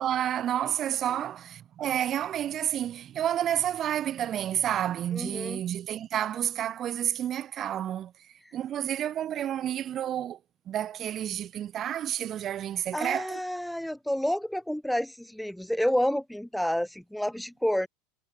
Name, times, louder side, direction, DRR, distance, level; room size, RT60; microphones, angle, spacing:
voice 1, 0.0-8.1 8.5-10.4 10.7-13.4, right 11 dB, 30° right, 5.5 m, -30 dB
voice 2, 5.1-5.6 12.9-17.9, equal, ahead, 3.5 m, -29 dB
supercardioid pair, 145°, 0 cm